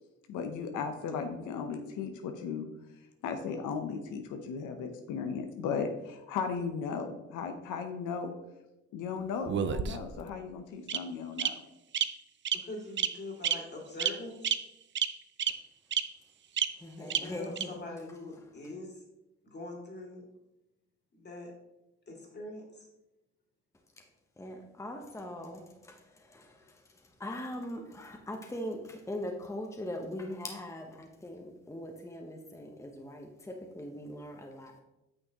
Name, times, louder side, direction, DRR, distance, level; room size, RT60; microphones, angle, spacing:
voice 1, 0.3-2.7 3.2-8.3 8.9-11.5, left 5 dB, 90° left, 6 dB, 0.8 m, -36 dB
Bird vocalization bird call bird song, 9.5-10.2 10.9-11.0 11.4-11.5 11.9-12.0 12.4-12.6 13.0-13.1 13.4-13.5 14.0-14.1 14.4-14.5 15.0-15.1 15.4-15.5 15.9-16.0 16.6-16.7 17.1-17.2 17.6-17.7, right 9 dB, 40° right, 0.5 m, -28 dB
voice 2, 12.6-14.5 17.0-19.0 19.4-20.3 21.1-21.5 22.1-22.9, left 2 dB, 35° left, 0 dB, 2.4 m, -43 dB
voice 3, 16.8-17.8 24.4-34.8, left 1 dB, 10° left, 2 dB, 0.9 m, -41 dB
8.9 x 6.1 x 2.9 m, 0.94 s
cardioid pair, 90°, 30 cm